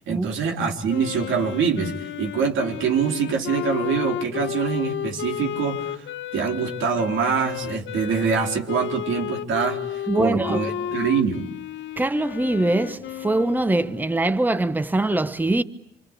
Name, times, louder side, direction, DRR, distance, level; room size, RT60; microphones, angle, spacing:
voice 1, 0.1-6.0 6.3-11.4, right 6 dB, 80° right, 4.2 m, -24 dB
Wind instrument woodwind instrument, 0.9-14.3, left 10 dB, 70° left, 1.4 m, -32 dB
voice 2, 10.1-10.6 12.0-15.6, right 2 dB, 10° right, 1.0 m, -23 dB
27.5 x 26.0 x 8.4 m
cardioid pair, 90°, 20 cm